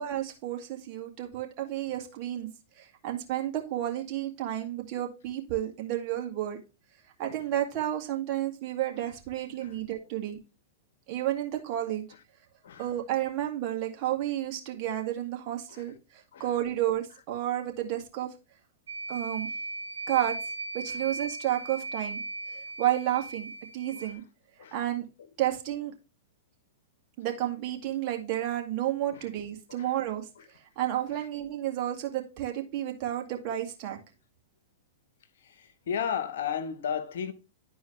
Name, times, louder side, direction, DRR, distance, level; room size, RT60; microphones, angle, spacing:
voice 1, 0.0-2.5 2.8-6.6 7.2-10.4 11.1-12.0 12.8-15.9 16.4-18.3 19.1-19.5 20.1-20.4 20.7-22.2 22.5-24.2 24.7-25.1 25.4-25.9 27.2-30.3 30.8-34.0, right 12 dB, 45° right, 2.1 m, -31 dB
sound 1, 18.9-24.1, right 2 dB, 85° right, 0.7 m, -37 dB
voice 2, 35.4-37.3, left 7 dB, 70° left, 1.2 m, -34 dB
11.5 x 4.7 x 3.2 m
hypercardioid pair, 115°, 0 cm